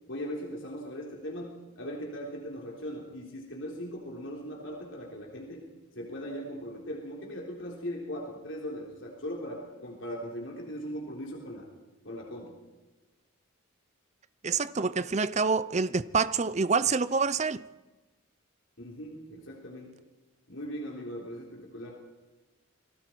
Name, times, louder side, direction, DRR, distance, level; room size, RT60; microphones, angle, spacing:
voice 1, 0.1-5.7 6.0-11.7 12.0-12.6 18.8-20.0 20.5-22.0, equal, 60° left, 3.7 m, -39 dB
voice 2, 14.4-17.6, right 4 dB, 30° right, 0.6 m, -27 dB
28.5 x 21.0 x 4.7 m
head